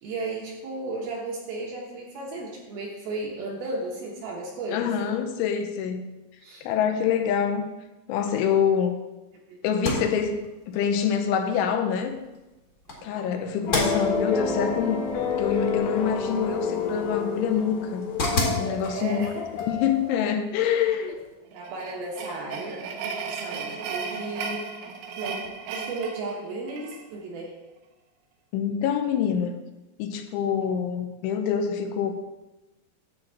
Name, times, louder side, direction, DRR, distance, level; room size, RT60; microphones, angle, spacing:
voice 1, 0.0-4.9 6.4-6.7 9.5-9.6 12.9-13.2 18.9-19.5 21.1-21.2 21.5-22.9 23.3-24.6 25.2-27.5, right 2 dB, 65° right, 2.6 m, -35 dB
voice 2, 4.7-6.1 6.6-7.7 8.1-8.9 9.6-12.1 13.0-15.1 15.4-18.1 18.6-19.3 19.6-21.2 28.5-29.5 30.0-32.1, left 7 dB, 85° left, 3.2 m, -26 dB
sound 1, 9.7-21.3, left 2 dB, 50° left, 1.1 m, -35 dB
sound 2, 13.7-20.3, left 5 dB, 65° left, 2.1 m, -29 dB
sound 3, 21.5-27.0, right 5 dB, 85° right, 3.4 m, -35 dB
10.5 x 3.8 x 7.4 m
omnidirectional pair, 5.4 m